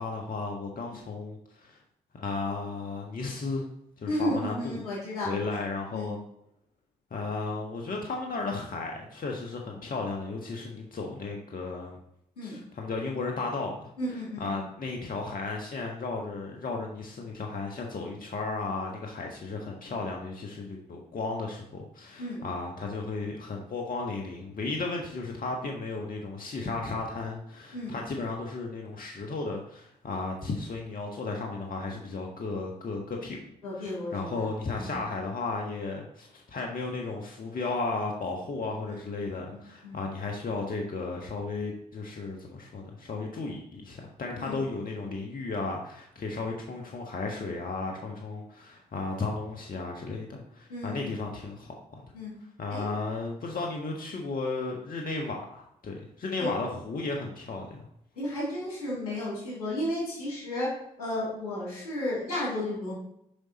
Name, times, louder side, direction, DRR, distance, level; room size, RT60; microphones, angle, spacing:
voice 1, 0.0-1.8 2.1-3.6 4.0-4.8 5.2-6.2 7.1-12.0 12.4-13.9 14.4-33.4 33.8-52.0 52.6-57.8, left 3 dB, 50° left, 1 dB, 1.5 m, -34 dB
voice 2, 4.1-5.6 5.9-6.2 12.4-12.6 14.0-14.6 22.2-22.4 27.7-27.9 33.6-34.9 38.9-39.0 39.5-40.0 44.4-44.6 50.7-51.2 52.1-52.3 52.7-52.9 56.4-56.5 58.1-62.9, left 1 dB, 90° left, -6 dB, 3.2 m, -33 dB
7.0 x 5.4 x 4.2 m, 0.76 s
hypercardioid pair, 45°, 19 cm